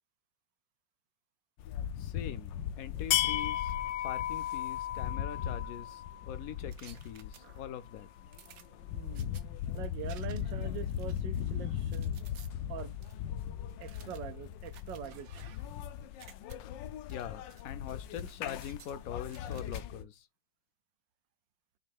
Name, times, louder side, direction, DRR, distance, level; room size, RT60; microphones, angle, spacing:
sound 1, 1.6-20.0, left 10 dB, 80° left, 1.3 m, -37 dB
voice 1, 2.0-3.7 4.0-8.1 17.1-20.3, left 9 dB, 60° left, 1.0 m, -43 dB
sound 2, 6.7-7.8 8.3-9.4 10.1-10.6 11.0-12.5 13.0-13.1 13.8-15.8 16.1-16.6 17.1-17.6 17.9-18.9 19.3-19.8, right 9 dB, 60° right, 1.0 m, -57 dB
voice 2, 8.9-9.3 9.7-12.1 12.7-13.0 13.8-15.4, right 9 dB, 75° right, 1.4 m, -43 dB
6.5 x 2.7 x 5.4 m
omnidirectional pair, 2.0 m